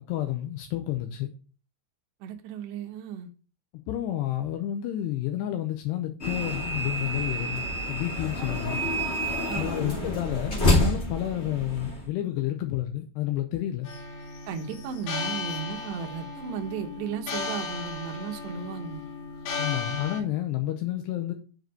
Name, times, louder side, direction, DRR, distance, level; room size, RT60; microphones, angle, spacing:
voice 1, 0.1-1.3 3.9-8.8 9.5-13.9 19.6-21.3, left 13 dB, 85° left, 2.5 m, -30 dB
voice 2, 2.2-3.3 9.5-10.0 14.5-19.0, right 6 dB, 70° right, 3.0 m, -35 dB
sound 1, 6.2-12.1, left 1 dB, 30° left, 1.1 m, -28 dB
sound 2, 13.9-20.2, left 4 dB, 70° left, 3.6 m, -35 dB
7.7 x 4.9 x 6.6 m
omnidirectional pair, 5.6 m